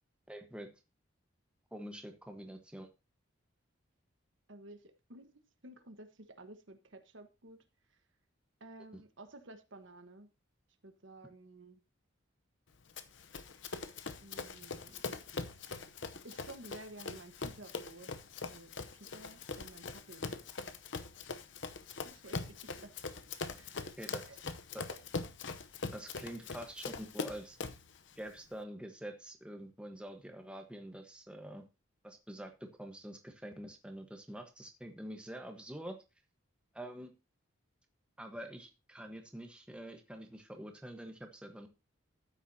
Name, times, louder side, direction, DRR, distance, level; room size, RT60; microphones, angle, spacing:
voice 1, 0.3-0.7 1.7-2.9 8.9-9.0 24.0-24.3 24.7-25.0 25.9-27.6 28.2-31.6 32.0-36.0 36.7-37.1 38.2-41.7, right 1 dB, 5° right, 1.1 m, -46 dB
voice 2, 4.5-5.3 5.6-7.6 8.6-10.3 10.8-11.8 14.2-15.1 16.2-18.2 18.5-20.3 22.0-22.9 23.5-23.7 24.3-24.4, right 2 dB, 65° right, 1.3 m, -53 dB
Run, 13.0-27.9, left 4 dB, 65° left, 0.8 m, -42 dB
13.0 x 9.3 x 2.8 m
head